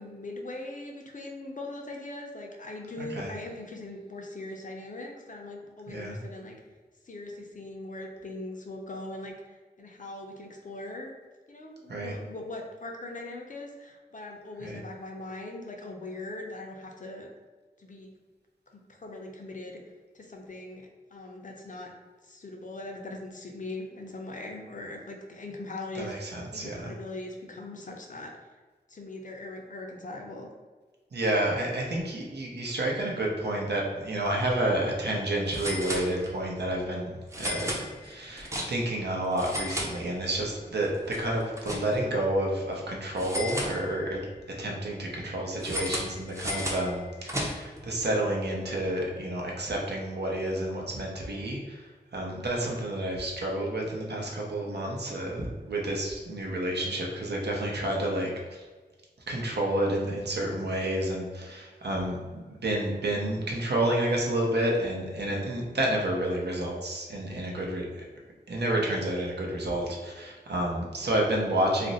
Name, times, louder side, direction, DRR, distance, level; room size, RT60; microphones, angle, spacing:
voice 1, 0.0-6.6 7.0-11.1 11.5-17.3 17.8-18.1 18.7-19.8 20.1-21.9 22.2-26.1 26.5-28.5 28.9-30.5, left 2 dB, 50° left, 1 dB, 0.5 m, -40 dB
voice 2, 3.0-3.3 5.9-6.2 11.9-12.1 14.6-14.8 25.9-26.9 31.1-44.2 44.6-58.6 59.3-68.0 68.5-71.9, right 1 dB, 75° right, -1 dB, 0.7 m, -30 dB
sound 1, 34.3-34.5 34.8-34.9 35.5-36.6 37.3-39.0 39.3-40.5 40.8-42.2 43.2-44.3 45.6-47.8, equal, 15° right, 0.6 m, -35 dB
2.5 x 2.0 x 3.9 m, 1.4 s
wide cardioid pair, 55°, 17 cm